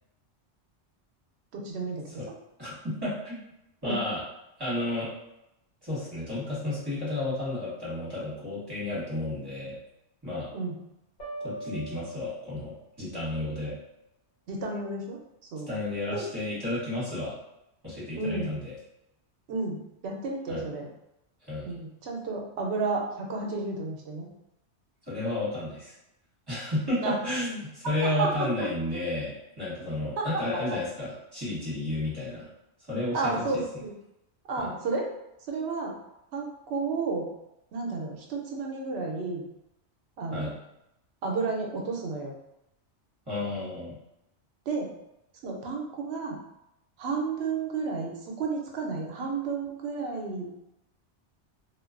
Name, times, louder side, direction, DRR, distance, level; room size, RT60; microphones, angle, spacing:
voice 1, 1.5-2.0 3.8-4.0 10.5-10.7 14.5-15.2 15.5-15.7 16.1-16.3 18.1-18.6 19.5-20.9 21.6-24.3 27.0-27.2 28.2-28.7 30.2-30.4 33.1-33.9 34.5-35.1 35.5-36.0 36.3-37.3 37.7-39.4 40.2-40.5 41.2-42.3 44.7-44.9 45.4-46.4 47.0-50.5, right 3 dB, 70° right, 0 dB, 0.8 m, -32 dB
voice 2, 2.6-3.4 3.8-4.2 4.6-5.1 5.8-9.8 10.2-10.5 11.4-13.8 15.7-17.4 17.8-18.7 20.5-20.6 21.4-21.8 25.1-25.9 26.5-32.5 32.8-33.6 34.6-34.7 40.3-40.5 43.3-44.0, left 1 dB, 20° right, -9 dB, 1.1 m, -32 dB
sound 1, 11.2-13.1, right 2 dB, 55° left, 1.2 m, -41 dB
2.4 x 2.2 x 2.3 m, 0.86 s
omnidirectional pair, 1.2 m